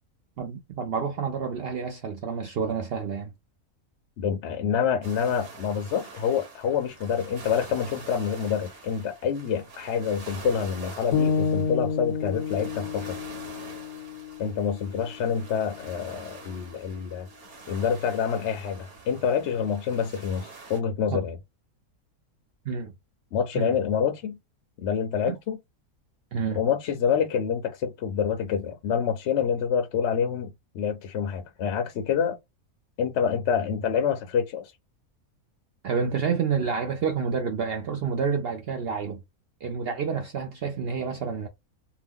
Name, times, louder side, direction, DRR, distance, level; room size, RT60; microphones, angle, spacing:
voice 1, 0.4-3.3 21.1-21.2 22.7-22.9 23.5-23.8 25.3-25.4 26.3-26.6 35.8-39.2 39.6-41.5, right 6 dB, 80° right, 0.5 m, -29 dB
voice 2, 4.2-13.2 14.4-17.3 17.7-21.4 23.3-24.4 24.8-25.6 26.6-30.5 30.7-32.4 33.0-34.7, left 7 dB, 65° left, 0.7 m, -27 dB
sound 1, 5.0-20.8, right 4 dB, 45° right, 1.1 m, -46 dB
sound 2, 11.1-15.3, left 6 dB, 90° left, 1.2 m, -29 dB
2.8 x 2.2 x 3.5 m
omnidirectional pair, 1.6 m